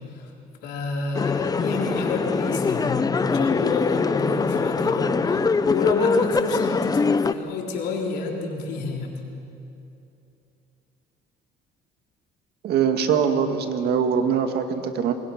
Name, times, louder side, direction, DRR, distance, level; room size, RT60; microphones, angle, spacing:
voice 1, 0.6-9.2, left 4 dB, 85° left, 0 dB, 4.0 m, -29 dB
sound 1, 1.1-7.3, left 4 dB, 20° left, 0.7 m, -23 dB
voice 2, 12.6-15.1, right 7 dB, 70° right, 7 dB, 2.0 m, -22 dB
28.0 x 21.5 x 6.0 m, 2.8 s
cardioid pair, 110°, 17 cm